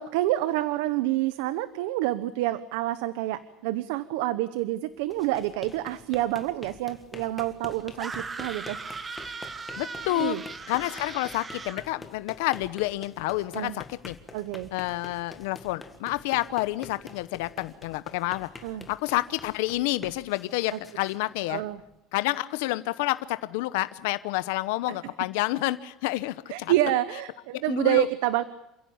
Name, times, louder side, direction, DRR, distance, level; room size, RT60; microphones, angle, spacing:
voice 1, 0.0-8.8 10.1-10.4 13.5-13.8 14.3-14.7 18.6-18.9 20.7-20.8 21.5-21.8 26.5-28.4, right 15 dB, 85° right, 14 dB, 1.0 m, -28 dB
sound 1, 5.0-22.0, left 3 dB, 10° left, 1.8 m, -47 dB
sound 2, 8.0-11.9, right 4 dB, 15° right, 1.1 m, -38 dB
voice 2, 9.8-10.4 10.7-14.2 14.7-18.5 18.9-21.6 22.1-26.7 27.7-28.1, left 18 dB, 85° left, 14 dB, 0.9 m, -29 dB
28.5 x 16.0 x 8.6 m, 0.94 s
cardioid pair, 170°, 0 cm